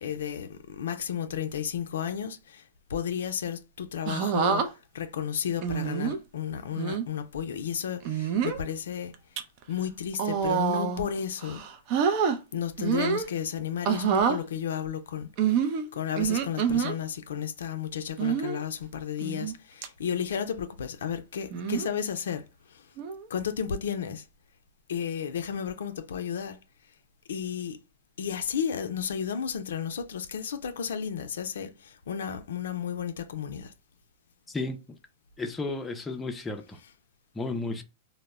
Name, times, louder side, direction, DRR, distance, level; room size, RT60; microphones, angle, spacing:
voice 1, 0.0-2.6 2.9-4.6 4.9-9.1 9.7-11.6 12.5-15.3 15.9-22.4 22.7-22.8 23.3-24.2 24.9-26.6 27.3-27.8 28.2-33.7, left 8 dB, 80° left, 0.4 m, -33 dB
sound 1, 4.1-4.7 5.6-6.2 6.8-7.0 8.0-8.6 9.1-9.4 10.1-11.1 11.4-12.4 12.8-13.3 13.8-14.4 15.4-16.9 18.2-18.6 19.2-19.5 19.8-19.9 21.5-21.9 23.0-23.3, right 7 dB, 50° right, 0.4 m, -27 dB
voice 2, 34.5-35.0 35.4-36.8 37.4-37.8, left 3 dB, 10° left, 0.4 m, -33 dB
2.0 x 2.0 x 3.4 m
hypercardioid pair, 120°, 0 cm